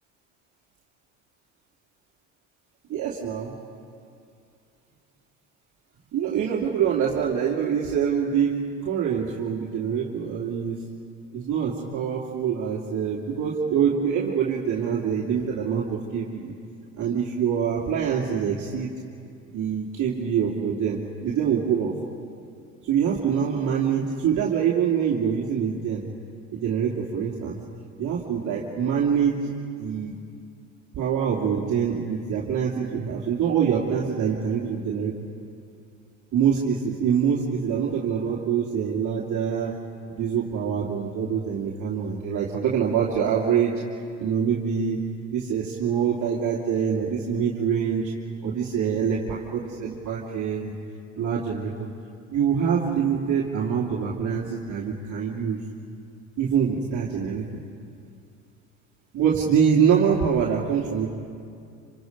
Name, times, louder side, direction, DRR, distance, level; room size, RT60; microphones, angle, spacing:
voice 1, 2.9-3.5 6.1-10.8 11.3-16.5 17.0-18.9 19.5-21.9 22.8-26.0 26.5-27.6 28.0-29.5 29.8-30.1 30.9-35.2 36.3-39.8 40.1-43.7 44.2-45.0 45.3-48.1 48.4-50.7 51.2-51.9 52.3-55.6 56.4-57.5 59.1-61.1, right 7 dB, 55° right, -4 dB, 2.9 m, -25 dB
27.0 x 26.5 x 5.5 m, 2.4 s
hypercardioid pair, 75°, 37 cm